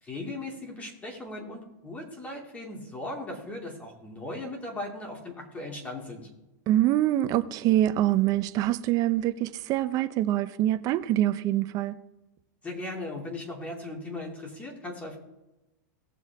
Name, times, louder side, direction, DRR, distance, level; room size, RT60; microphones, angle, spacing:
voice 1, 0.0-6.3 12.6-15.2, left 2 dB, 15° left, 1 dB, 2.7 m, -38 dB
voice 2, 6.7-12.0, right 13 dB, 35° right, 12 dB, 0.7 m, -25 dB
18.5 x 7.1 x 3.6 m, 1.0 s
supercardioid pair, 140°, 10 cm